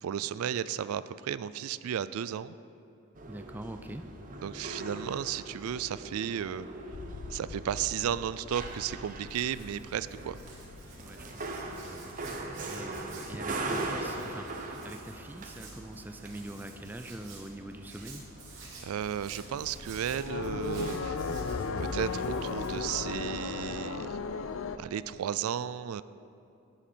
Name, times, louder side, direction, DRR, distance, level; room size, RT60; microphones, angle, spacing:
voice 1, 0.0-2.6 4.4-6.7 7.3-10.4 18.8-21.2 21.8-24.2 24.8-26.0, right 9 dB, 80° right, 15 dB, 0.3 m, -34 dB
sound 1, 3.1-22.7, right 2 dB, 40° right, 0.9 m, -42 dB
voice 2, 3.3-4.1 9.7-9.8 11.0-12.1 12.6-14.5 14.8-18.3, right 1 dB, 10° right, 7 dB, 0.4 m, -44 dB
sound 2, 6.9-15.8 16.2-16.9 17.2-17.3 17.6-24.8, left 4 dB, 65° left, 0.5 m, -38 dB
Hands, 8.6-23.2, right 4 dB, 65° right, 2.5 m, -52 dB
11.0 x 10.0 x 4.3 m, 2.8 s
head